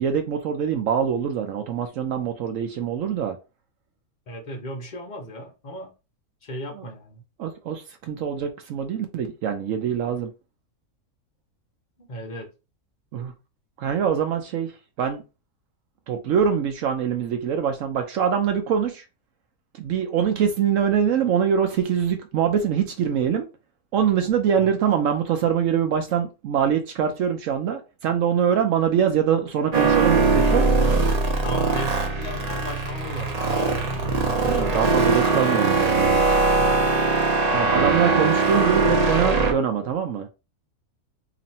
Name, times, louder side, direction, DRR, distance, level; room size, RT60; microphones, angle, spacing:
voice 1, 0.0-3.4 6.7-6.9 7.4-10.3 13.1-13.3 13.8-14.7 15.0-15.2 16.1-19.0 19.7-23.5 23.9-30.7 34.5-36.2 37.5-40.3, right 8 dB, 70° right, 0.8 m, -24 dB
voice 2, 4.3-5.9 6.4-7.2 12.1-12.5 24.6-24.7 31.4-33.8 34.3-35.0 36.6-37.0, equal, 50° left, 0.5 m, -35 dB
sound 1, 29.7-39.5, right 3 dB, 45° right, 0.5 m, -21 dB
3.0 x 2.5 x 4.0 m
omnidirectional pair, 1.6 m